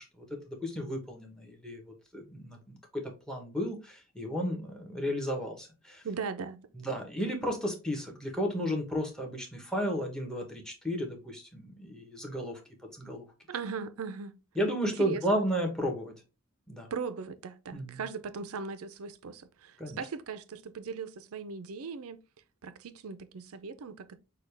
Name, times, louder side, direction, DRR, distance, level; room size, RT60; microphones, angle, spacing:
voice 1, 0.2-1.8 2.1-6.0 6.7-12.6 12.9-13.2 14.6-16.1 16.7-16.9 17.7-18.0 19.8-20.0, equal, 5° left, 1.0 m, -33 dB
voice 2, 6.0-6.6 13.5-14.3 14.8-15.4 16.9-22.2 22.6-24.2, right 5 dB, 80° right, 0.5 m, -39 dB
6.3 x 2.3 x 3.3 m
head